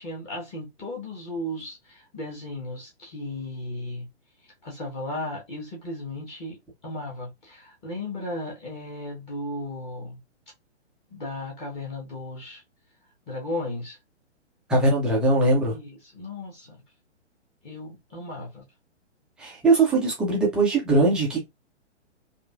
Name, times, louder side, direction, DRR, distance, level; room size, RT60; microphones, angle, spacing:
voice 1, 0.0-4.1 4.6-6.6 6.8-10.2 11.1-12.6 13.3-14.0 15.7-16.8 17.6-18.6, left 1 dB, 20° left, 1.2 m, -35 dB
voice 2, 14.7-15.8 19.4-21.4, right 2 dB, ahead, 0.5 m, -21 dB
5.1 x 2.5 x 2.4 m
figure-of-eight pair, 125°, 35 cm